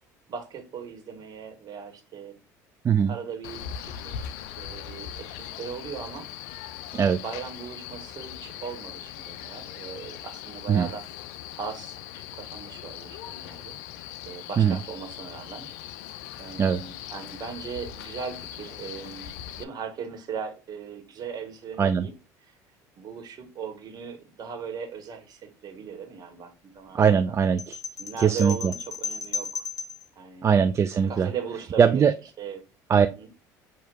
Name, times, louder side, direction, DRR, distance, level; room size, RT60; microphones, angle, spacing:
voice 1, 0.3-2.4 3.1-6.3 6.9-11.0 11.6-12.0 12.3-13.8 14.2-15.7 16.4-19.3 19.6-22.1 23.0-27.0 27.3-27.4 28.0-29.6 30.1-30.5 31.1-32.0 32.4-32.6 33.0-33.3, right 6 dB, 50° right, 5 dB, 1.6 m, -38 dB
Male speech man speaking, 3.4-19.6, left 10 dB, 75° left, 0.4 m, -40 dB
voice 2, 26.9-27.8 28.2-28.7 30.4-31.3 31.8-32.1 32.9-33.1, right 7 dB, 30° right, 9 dB, 0.3 m, -21 dB
sound 1, 27.6-30.1, left 5 dB, 40° left, 1.1 m, -35 dB
6.2 x 2.8 x 2.4 m, 0.30 s
hypercardioid pair, 75°, 9 cm